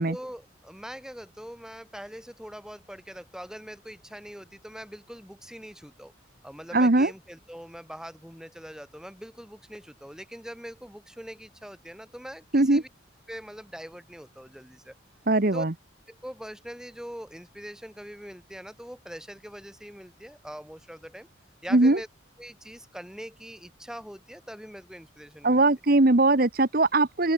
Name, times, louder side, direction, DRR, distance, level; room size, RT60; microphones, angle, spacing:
voice 1, 0.1-6.1 6.4-12.9 13.3-14.9 15.5-15.7 16.1-21.3 21.6-22.1 22.4-25.6, equal, 5° right, 5.2 m, -42 dB
voice 2, 6.7-7.1 12.5-12.8 15.3-15.7 21.7-22.0 25.4-27.3, right 2 dB, 50° right, 1.1 m, -20 dB
open air
head